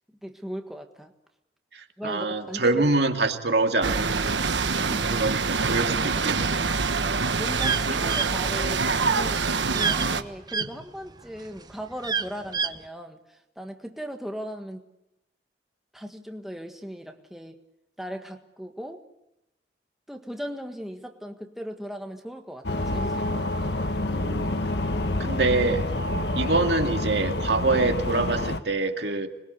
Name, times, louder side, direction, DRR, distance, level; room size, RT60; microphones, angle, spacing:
voice 1, 0.2-1.1 2.0-2.8 4.9-5.2 7.3-14.8 15.9-17.6 18.0-19.0 20.1-23.7 26.1-26.2, equal, ahead, 3 dB, 1.7 m, -38 dB
voice 2, 1.7-4.4 4.8-6.7 24.1-24.5 25.2-25.9 26.4-29.3, right 3 dB, 70° right, 5 dB, 2.4 m, -25 dB
sound 1, 3.8-10.2, right 4 dB, 85° right, 1.3 m, -25 dB
sound 2, 7.6-10.7 11.2-12.8, right 5 dB, 25° right, 0.9 m, -28 dB
sound 3, 22.6-28.6, left 1 dB, 70° left, 1.5 m, -27 dB
26.0 x 21.5 x 8.2 m, 0.89 s
head